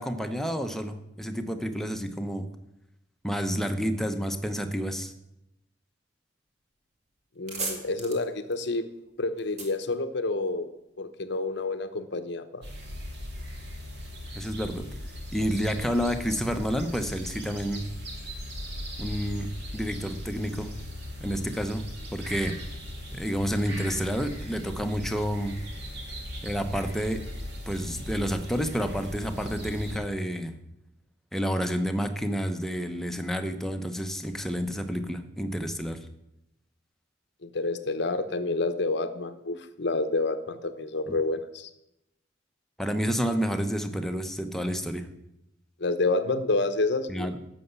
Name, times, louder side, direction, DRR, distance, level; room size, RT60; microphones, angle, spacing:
voice 1, 0.0-2.5 3.2-5.1 14.3-14.9 15.3-17.8 19.0-20.7 21.2-22.6 23.1-25.6 26.4-27.2 27.7-30.5 31.3-36.1 41.1-41.2 42.8-45.1 47.1-47.4, equal, ahead, 6 dB, 0.8 m, -29 dB
sound 1, 6.7-6.9 7.2-10.8, right 2 dB, 35° right, 2.3 m, -39 dB
voice 2, 7.4-8.9 9.2-10.7 11.0-12.6 37.4-41.7 45.8-47.3, left 3 dB, 60° left, 10 dB, 0.8 m, -29 dB
sound 2, 12.6-30.0, left 1 dB, 60° right, 2.7 m, -39 dB
11.0 x 6.8 x 8.1 m, 0.87 s
head